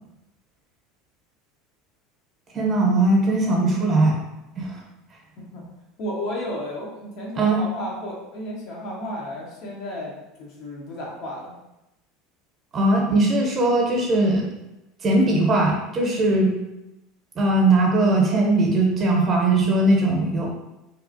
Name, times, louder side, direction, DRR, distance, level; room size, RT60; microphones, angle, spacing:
voice 1, 2.5-4.2 4.6-4.8 7.4-7.6 12.7-14.5 15.0-16.5 17.3-20.5, right 2 dB, 35° right, -1 dB, 0.8 m, -19 dB
voice 2, 6.0-10.1 10.4-11.5, left 1 dB, 60° left, -3 dB, 0.9 m, -33 dB
2.7 x 2.4 x 2.6 m, 0.93 s
hypercardioid pair, 85°, 0 cm